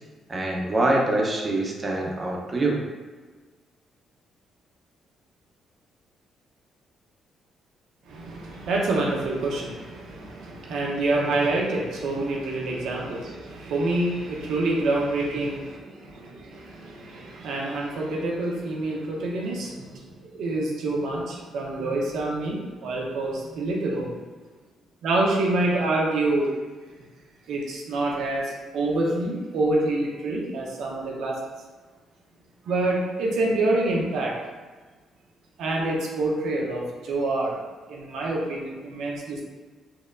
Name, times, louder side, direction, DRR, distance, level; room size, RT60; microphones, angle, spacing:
voice 1, 0.3-2.8, right 2 dB, 30° right, -1 dB, 0.8 m, -24 dB
voice 2, 8.1-24.2 25.0-26.5 27.5-31.4 32.7-34.4 35.6-37.6 37.9-39.4, right 2 dB, 80° right, -2 dB, 0.8 m, -27 dB
4.4 x 2.8 x 2.5 m, 1.4 s
cardioid pair, 90°, 0 cm